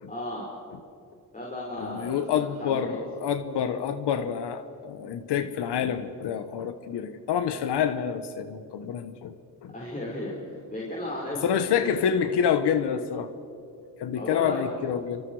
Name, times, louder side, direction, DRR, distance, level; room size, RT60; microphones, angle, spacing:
voice 1, 0.1-0.5 1.3-3.0 9.7-12.0 14.1-14.8, left 1 dB, 20° left, -5 dB, 5.2 m, -35 dB
voice 2, 1.8-9.3 9.6-9.7 11.4-13.3 14.0-15.2, left 8 dB, 85° left, 10 dB, 1.2 m, -27 dB
29.0 x 25.0 x 4.8 m, 2.5 s
cardioid pair, 115°, 40 cm